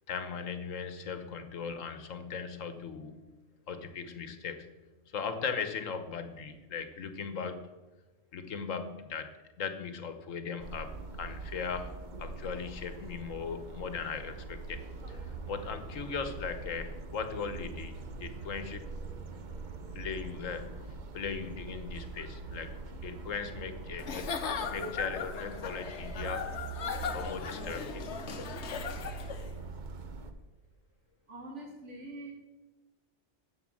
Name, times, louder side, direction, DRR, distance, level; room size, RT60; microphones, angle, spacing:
voice 1, 0.1-3.2 3.7-4.6 5.1-7.7 8.3-9.3 9.6-11.9 12.2-14.8 15.1-17.9 18.2-18.9 19.9-20.8 21.1-22.7 23.0-24.3 24.7-26.5 27.1-28.1, left 6 dB, 90° left, 8 dB, 1.4 m, -38 dB
sound 1, 10.6-30.3, right 4 dB, 40° right, 0.9 m, -43 dB
Giggle / Chuckle chortle, 24.0-29.5, left 6 dB, 65° left, 1.2 m, -38 dB
voice 2, 31.3-32.3, right 2 dB, 70° right, 0 dB, 1.9 m, -44 dB
13.5 x 4.9 x 7.4 m, 1.2 s
omnidirectional pair, 1.3 m